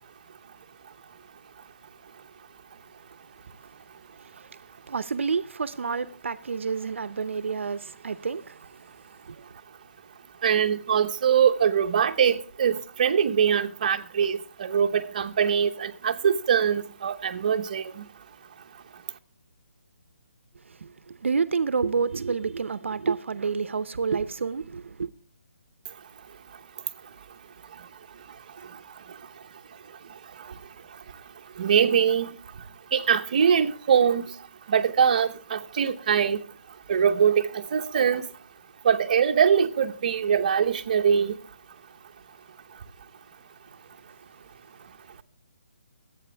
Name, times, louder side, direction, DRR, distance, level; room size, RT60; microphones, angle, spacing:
voice 1, 4.2-4.6 4.9-8.6 9.3-9.5 20.7-25.1, right 5 dB, 70° right, 0.7 m, -29 dB
voice 2, 10.4-18.0 31.6-32.3 32.9-34.3 34.7-36.4 36.9-38.2 38.8-41.3, right 7 dB, 35° right, 0.8 m, -23 dB
22.5 x 8.6 x 3.4 m
hypercardioid pair, 170°, 7 cm